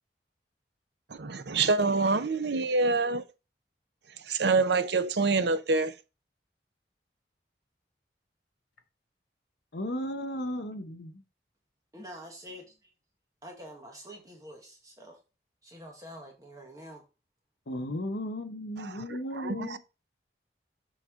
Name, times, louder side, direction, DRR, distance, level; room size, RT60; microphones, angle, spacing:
voice 1, 1.1-3.2 4.3-5.9 18.8-19.0 19.3-19.8, right 3 dB, 75° right, 0.7 m, -26 dB
voice 2, 9.7-11.2 17.7-19.8, left 1 dB, 75° left, 1.0 m, -35 dB
voice 3, 11.9-12.7 13.4-15.2 15.6-17.0, equal, 20° right, 1.5 m, -46 dB
7.6 x 4.7 x 3.7 m
head